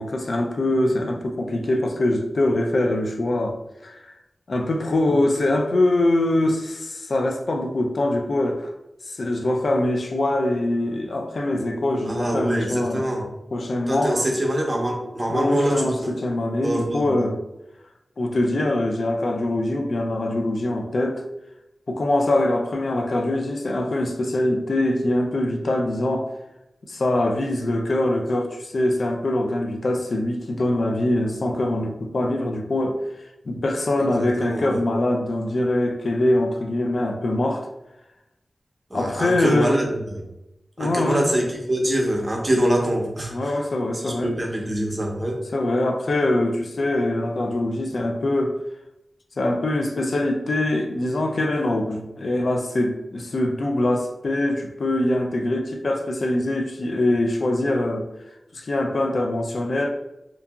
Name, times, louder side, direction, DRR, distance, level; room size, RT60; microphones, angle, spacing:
voice 1, 0.0-3.6 3.8-4.1 4.5-8.7 9.1-13.1 13.5-14.2 15.3-17.4 18.2-21.2 21.9-26.3 26.9-33.0 33.5-37.7 38.9-39.8 40.8-41.3 43.3-44.3 45.5-48.6 49.4-58.1 58.5-59.9, left 1 dB, 75° left, 3 dB, 0.3 m, -23 dB
voice 2, 12.1-13.2 13.9-16.1 16.6-17.1 34.0-34.8 38.9-40.2 40.8-43.5 44.0-45.4, right 1 dB, 30° right, 0 dB, 0.6 m, -24 dB
2.7 x 2.5 x 2.3 m, 0.90 s
wide cardioid pair, 85°, 0 cm